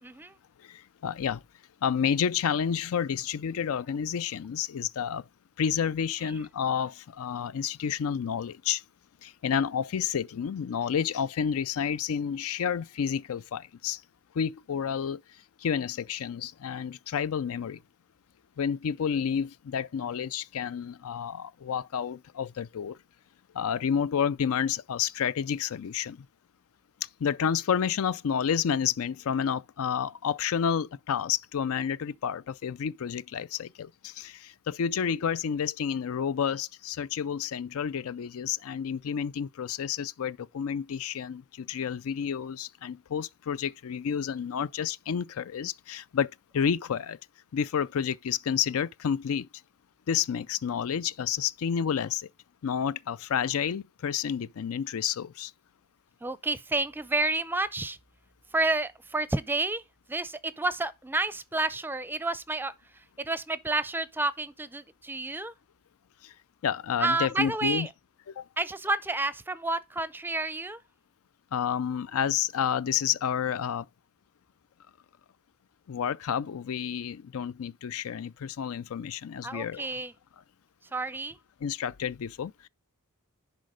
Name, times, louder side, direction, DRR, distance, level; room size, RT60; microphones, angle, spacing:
voice 1, 0.0-0.3 56.2-58.0 58.5-59.8 60.1-62.7 63.2-65.5 67.0-67.9 68.6-70.8 79.4-80.1 80.9-81.4, right 2 dB, 10° right, 0.5 m, -30 dB
voice 2, 0.6-1.4 1.8-5.2 5.6-8.8 9.2-14.0 14.3-17.8 18.6-23.0 23.5-26.3 27.0-47.2 47.5-49.5 50.1-52.3 52.6-55.5 66.2-66.3 66.6-67.9 68.4-68.5 71.5-73.9 75.9-79.9 81.6-82.7, left 7 dB, 65° left, 0.4 m, -30 dB
10.5 x 4.0 x 5.0 m
head